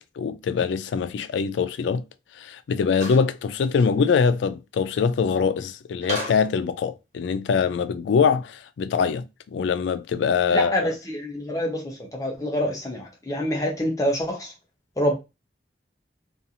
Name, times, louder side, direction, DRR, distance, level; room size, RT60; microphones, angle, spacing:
voice 1, 0.0-2.0 2.4-10.9, left 6 dB, 90° left, 0.3 m, -23 dB
sound 1, 2.9-3.2 3.8-3.9 6.0-6.5, equal, 40° right, 0.9 m, -32 dB
voice 2, 10.5-14.5 15.0-15.1, equal, 20° left, 0.6 m, -26 dB
2.5 x 2.4 x 2.7 m
head